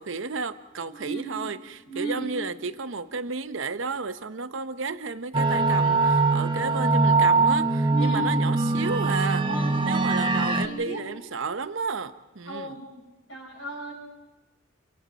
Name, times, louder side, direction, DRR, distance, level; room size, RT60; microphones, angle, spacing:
voice 1, 0.0-9.5 9.8-12.8, right 4 dB, 65° right, 0.8 m, -32 dB
voice 2, 1.0-1.4 1.9-2.3 7.9-8.3 9.4-9.9 10.5-11.0 12.5-12.9 13.3-13.9, right 2 dB, 70° left, 7.2 m, -34 dB
sound 1, 5.3-10.7, right 3 dB, 25° right, 0.9 m, -22 dB
28.5 x 24.5 x 4.1 m
head